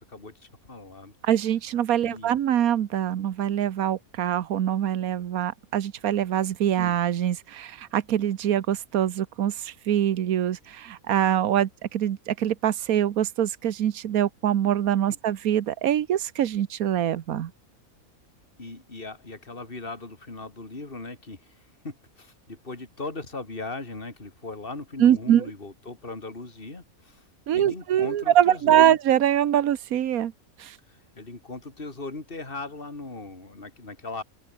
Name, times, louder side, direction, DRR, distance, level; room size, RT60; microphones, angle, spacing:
voice 1, 0.0-1.1 2.1-2.4 6.8-6.9 18.6-27.3 27.5-29.0 30.9-34.2, left 3 dB, 40° left, 3.7 m, -39 dB
voice 2, 1.2-17.5 25.0-25.5 27.5-30.3 30.6-30.8, right 10 dB, 85° right, 1.4 m, -24 dB
open air
omnidirectional pair, 1.5 m